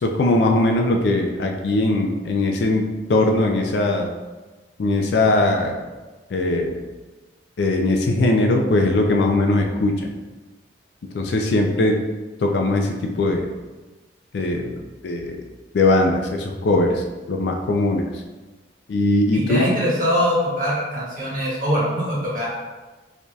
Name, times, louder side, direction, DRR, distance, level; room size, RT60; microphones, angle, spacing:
voice 1, 0.0-2.8 3.1-4.1 4.8-5.8 6.3-6.8 7.6-10.1 11.1-12.0 12.4-13.5 14.3-14.7 15.0-15.4 15.7-18.1 18.9-19.7, left 2 dB, 70° left, 2 dB, 0.4 m, -20 dB
voice 2, 19.3-22.5, equal, 50° right, -6 dB, 1.2 m, -22 dB
4.7 x 2.7 x 2.3 m, 1.2 s
head